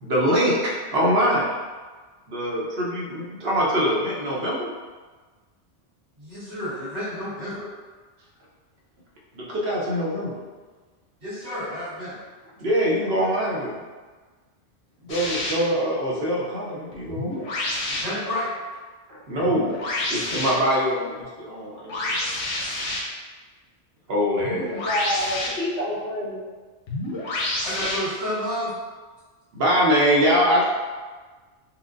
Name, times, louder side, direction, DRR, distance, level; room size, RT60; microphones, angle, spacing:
voice 1, 0.0-1.6 2.3-4.7 9.3-10.4 12.6-13.8 15.0-17.4 19.1-19.7 20.1-21.9 24.1-24.7 29.5-30.6, equal, 60° right, -4 dB, 1.0 m, -23 dB
voice 2, 6.2-7.7 11.2-12.2 17.9-18.5 27.6-28.7, left 1 dB, 90° right, -14 dB, 1.8 m, -30 dB
sound 1, 15.1-15.5 16.9-18.0 19.4-20.5 21.9-23.0 24.4-25.5 26.9-28.0, left 2 dB, 85° left, 1.0 m, -28 dB
voice 3, 24.7-26.4, left 1 dB, 50° left, -13 dB, 1.4 m, -28 dB
4.3 x 2.1 x 2.5 m, 1.4 s
omnidirectional pair, 1.2 m